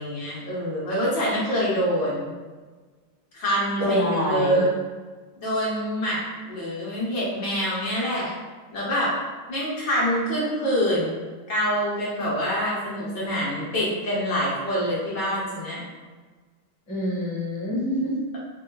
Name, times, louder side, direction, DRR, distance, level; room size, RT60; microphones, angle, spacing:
voice 1, 0.0-2.3 3.3-4.7 5.4-6.2 6.4-8.3 8.7-9.1 9.5-11.2 11.5-15.8, equal, 60° left, -7 dB, 1.4 m, -25 dB
voice 2, 3.8-4.6 16.9-18.4, equal, 15° left, -8 dB, 0.5 m, -26 dB
4.4 x 2.4 x 2.2 m, 1.4 s
omnidirectional pair, 2.4 m